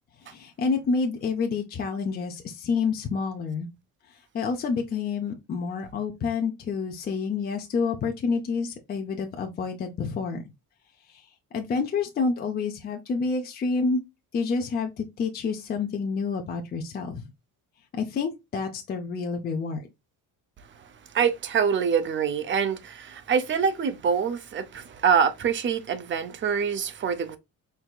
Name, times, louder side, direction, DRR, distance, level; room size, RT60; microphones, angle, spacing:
voice 1, 0.2-3.7 4.1-10.4 11.1-14.0 14.3-17.3 17.9-19.9, left 4 dB, 25° left, 0.5 m, -28 dB
voice 2, 21.1-27.4, right 6 dB, 35° right, 0.5 m, -25 dB
4.6 x 3.4 x 2.2 m
cardioid pair, 175°, 36 cm